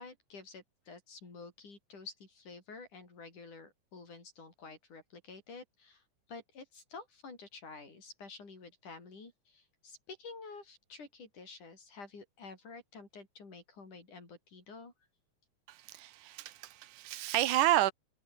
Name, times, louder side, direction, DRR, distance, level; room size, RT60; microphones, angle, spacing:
voice 1, 0.0-6.0 6.3-14.9, left 4 dB, 90° left, 7.9 m, -50 dB
voice 2, 15.7-17.9, right 14 dB, 90° right, 2.6 m, -30 dB
omnidirectional pair, 3.4 m